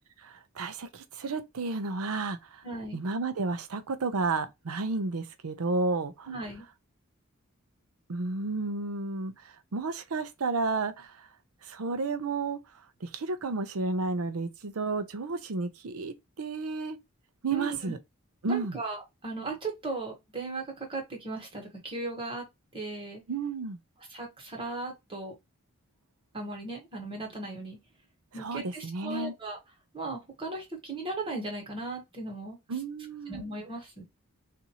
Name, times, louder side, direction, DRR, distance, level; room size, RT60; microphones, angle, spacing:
voice 1, 0.2-2.6 2.9-6.3 8.1-11.3 11.6-12.6 13.0-17.0 17.4-18.0 18.4-18.8 23.3-23.8 28.4-29.3 32.7-33.4, right 3 dB, 85° right, 0.6 m, -32 dB
voice 2, 2.6-3.0 6.2-6.7 17.5-17.9 18.5-22.5 22.7-23.2 24.1-25.3 26.3-27.8 28.3-29.6 29.9-32.6 33.3-34.0, right 2 dB, 25° right, 1.3 m, -37 dB
4.0 x 2.6 x 2.9 m
head